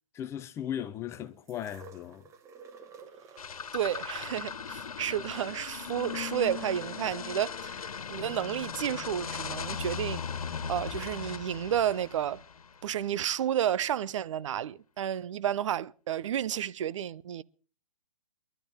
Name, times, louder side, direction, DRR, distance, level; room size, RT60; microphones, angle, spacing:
voice 1, 0.1-2.3, left 10 dB, 15° left, 0.6 m, -37 dB
sound 1, 1.5-7.5 8.4-8.5, right 5 dB, 15° right, 1.3 m, -54 dB
sound 2, 3.4-12.9, left 6 dB, 80° left, 1.6 m, -38 dB
voice 2, 3.7-7.8 8.1-10.2 10.7-12.4 12.8-17.4, right 10 dB, 60° right, 0.7 m, -31 dB
22.5 x 12.0 x 3.6 m
hypercardioid pair, 145°, 18 cm